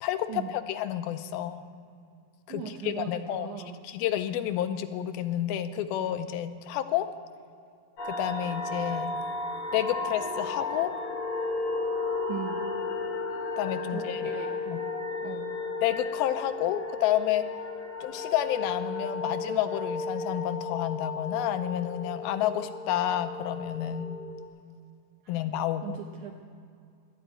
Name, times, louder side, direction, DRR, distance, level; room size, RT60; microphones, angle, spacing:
voice 1, 0.0-1.6 2.5-7.1 8.2-9.2 9.7-10.9 13.6-14.3 14.7-14.8 15.8-17.4 18.0-24.2 25.3-26.0, left 11 dB, 85° left, 10 dB, 2.5 m, -30 dB
voice 2, 2.5-3.8 12.3-12.6 13.9-14.5 15.2-15.5 25.2-25.4 25.8-26.4, right 9 dB, 75° right, 3 dB, 1.8 m, -39 dB
sound 1, 8.0-24.4, left 3 dB, 60° left, 1.4 m, -34 dB
12.0 x 11.0 x 9.1 m, 2.3 s
omnidirectional pair, 4.4 m